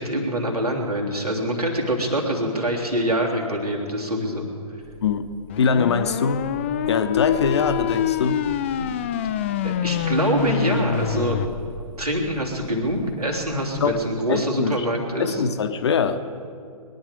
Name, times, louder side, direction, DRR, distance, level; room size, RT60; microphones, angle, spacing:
voice 1, 0.0-4.5 8.8-8.9 9.6-11.4 12.0-15.4, right 1 dB, 75° right, 0 dB, 3.2 m, -25 dB
sound 1, 4.8-14.1, left 1 dB, 30° right, 1.4 m, -43 dB
sound 2, 5.5-11.5, left 10 dB, 20° left, 0.4 m, -26 dB
voice 2, 5.6-6.5 6.9-8.4 13.8-14.0 14.3-14.8 15.2-16.2, left 6 dB, 45° left, 9 dB, 0.9 m, -22 dB
21.5 x 10.5 x 5.1 m, 2.3 s
figure-of-eight pair, 130°, 20 cm